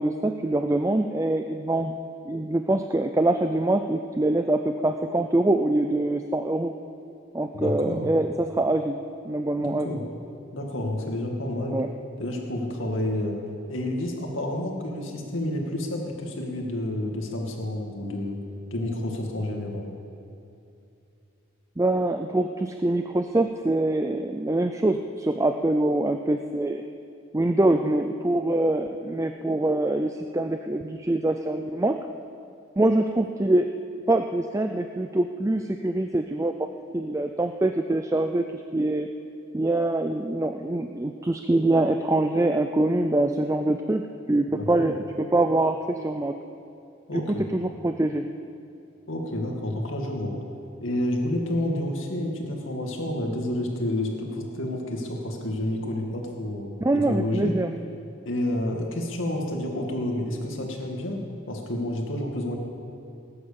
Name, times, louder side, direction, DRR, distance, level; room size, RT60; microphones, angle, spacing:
voice 1, 0.0-1.9 2.2-6.7 7.3-9.0 9.2-9.9 11.7-11.9 21.8-26.8 27.3-32.0 32.8-33.7 34.1-36.5 36.9-38.4 38.7-39.1 39.5-44.0 44.3-46.4 47.1-48.3 56.8-57.7, right 2 dB, 15° right, 6 dB, 0.4 m, -24 dB
voice 2, 7.5-8.1 9.6-10.0 10.5-11.8 12.2-13.4 13.7-18.4 18.7-19.9 44.6-44.9 47.1-47.5 49.1-50.4 50.8-56.8 57.1-57.6 58.3-62.6, left 1 dB, 70° left, 1 dB, 2.2 m, -29 dB
18.5 x 9.8 x 7.0 m, 2.7 s
head